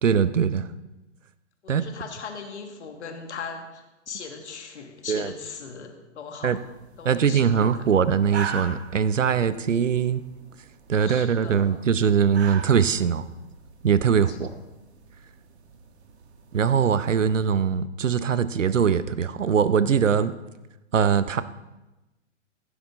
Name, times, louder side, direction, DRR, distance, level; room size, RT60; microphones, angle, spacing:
voice 1, 0.0-0.7 1.7-1.8 5.1-5.3 6.4-6.6 7.0-10.2 10.9-13.3 13.8-14.5 16.5-20.3 20.9-21.4, right 7 dB, 80° right, 15 dB, 0.8 m, -22 dB
voice 2, 1.6-6.6 7.0-7.8 10.9-11.8 14.1-14.6, left 5 dB, 65° left, 4 dB, 1.9 m, -39 dB
sound 1, 6.5-17.5, right 6 dB, 60° right, 1.5 m, -42 dB
15.5 x 11.0 x 3.7 m, 1.0 s
figure-of-eight pair, 115°, 37 cm